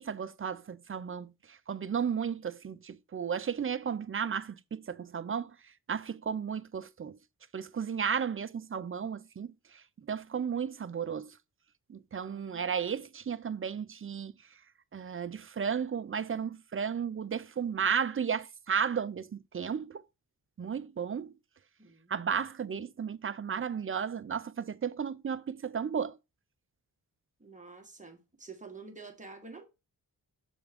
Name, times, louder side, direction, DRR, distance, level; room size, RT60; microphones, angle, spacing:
voice 1, 0.0-5.5 5.9-7.2 7.5-11.3 11.9-14.3 14.9-20.0 20.6-21.3 22.1-26.2, right 7 dB, 35° right, 0.4 m, -34 dB
voice 2, 21.8-22.1 27.4-29.7, right 4 dB, 20° right, 1.5 m, -49 dB
6.8 x 3.5 x 5.1 m
wide cardioid pair, 105°, 39 cm